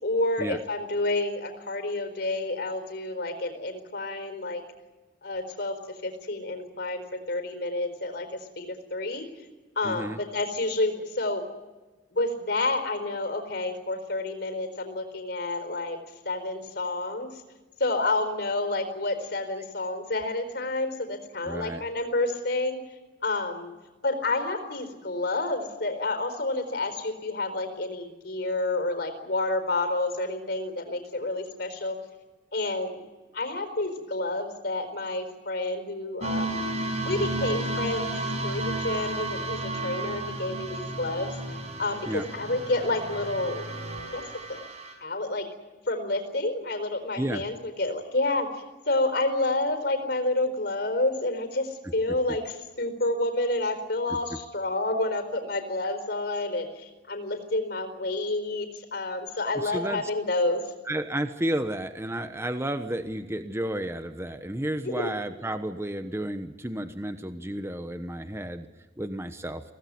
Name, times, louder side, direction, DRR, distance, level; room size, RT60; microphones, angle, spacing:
voice 1, 0.0-4.6 5.2-8.3 8.6-9.3 9.8-11.4 12.1-16.0 16.2-17.3 17.8-22.8 23.2-23.7 24.0-31.9 32.5-33.0 33.3-36.6 37.1-38.1 38.4-41.3 41.8-43.7 44.1-44.2 44.5-44.6 45.0-45.5 45.9-48.5 48.9-60.6 64.8-65.1, left 2 dB, 65° left, 8 dB, 4.3 m, -29 dB
voice 2, 9.8-10.2 21.4-21.8 42.1-42.3 47.2-47.4 51.8-51.9 59.5-60.0 60.9-68.7 69.0-69.6, right 1 dB, 15° right, 9 dB, 1.1 m, -32 dB
sound 1, 36.2-44.9, right 2 dB, 40° right, 5.8 m, -32 dB
24.5 x 18.0 x 9.4 m, 1.2 s
head